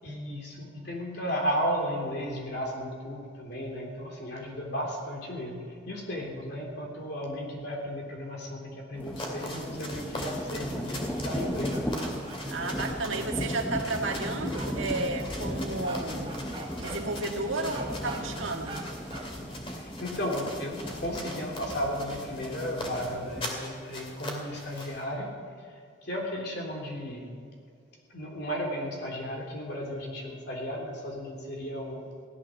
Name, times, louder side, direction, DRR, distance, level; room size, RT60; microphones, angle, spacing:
voice 1, 0.0-11.9 19.7-25.3 25.6-25.7 26.0-27.3 28.1-32.1, equal, 55° left, 0 dB, 3.3 m, -34 dB
sound 1, 9.0-25.0, left 1 dB, 25° left, 2.5 m, -41 dB
sound 2, 9.0-23.4, equal, 10° left, 0.9 m, -36 dB
sound 3, 11.7-13.2 14.0-14.2 14.5-14.7 15.8-16.0 16.3-17.0 17.7-18.2 18.7-18.8 19.1-19.3, right 3 dB, 25° right, 2.2 m, -41 dB
voice 2, 12.5-16.4 16.8-18.9, right 2 dB, 75° right, 2 dB, 1.7 m, -32 dB
16.5 x 12.0 x 6.4 m, 2.3 s
head